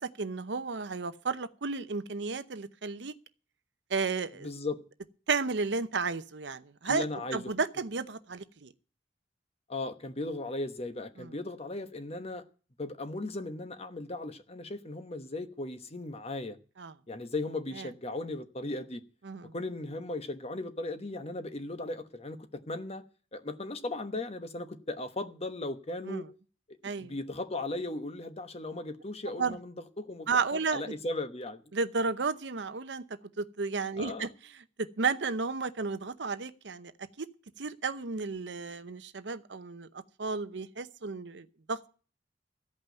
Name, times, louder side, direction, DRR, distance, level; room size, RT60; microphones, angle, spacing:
voice 1, 0.2-3.1 3.9-4.5 5.3-7.0 7.3-8.7 11.2-11.3 16.8-16.9 17.8-17.9 19.2-19.5 26.1-26.3 26.8-27.1 29.4-29.6 30.3-30.8 31.7-33.0 33.4-34.3 34.8-36.9 37.2-37.3 37.6-41.9, right 4 dB, 70° right, 0.8 m, -33 dB
voice 2, 4.4-4.8 6.8-7.4 9.7-12.4 12.8-16.6 17.1-19.0 19.5-23.0 23.3-26.3 27.0-30.3 30.7-31.6 34.0-34.3, left 2 dB, 35° left, 1.1 m, -37 dB
14.5 x 5.6 x 9.1 m
head